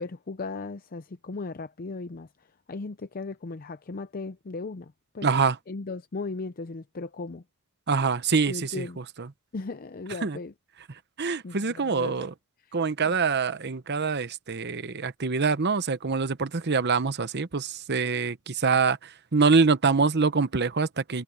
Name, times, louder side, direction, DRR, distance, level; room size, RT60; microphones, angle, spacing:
voice 1, 0.0-5.3 5.7-7.4 8.5-9.0 9.5-10.5 11.4-12.3 12.6-12.8 13.0-13.1, left 3 dB, 40° left, 0.5 m, -37 dB
voice 2, 5.2-5.6 7.9-8.9 10.2-10.4 11.2-12.3 12.7-21.2, right 4 dB, 50° right, 0.9 m, -25 dB
head